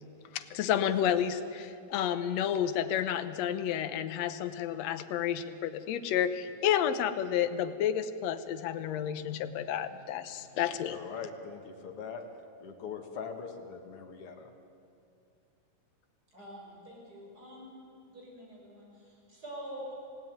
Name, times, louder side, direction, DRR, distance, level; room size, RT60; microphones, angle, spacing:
voice 1, 0.3-11.0, left 9 dB, 65° left, 9 dB, 1.8 m, -30 dB
voice 2, 10.8-12.2 12.6-14.5, left 6 dB, 45° left, 3 dB, 2.4 m, -42 dB
voice 3, 16.3-17.8 18.1-19.9, equal, 25° right, -2 dB, 6.8 m, -46 dB
28.0 x 16.5 x 9.5 m, 2.5 s
omnidirectional pair, 4.1 m